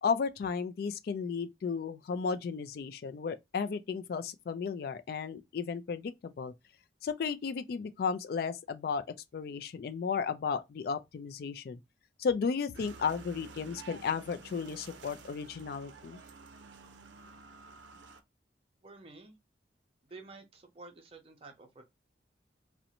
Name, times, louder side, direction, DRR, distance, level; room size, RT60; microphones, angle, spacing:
voice 1, 0.0-6.5 7.0-9.0 9.3-11.8 12.2-16.2, left 5 dB, 55° left, 0.3 m, -34 dB
sound 1, 12.7-18.2, right 4 dB, 90° right, 0.5 m, -51 dB
voice 2, 18.8-19.4 20.1-21.8, right 3 dB, 30° right, 0.5 m, -51 dB
2.5 x 2.1 x 2.8 m
head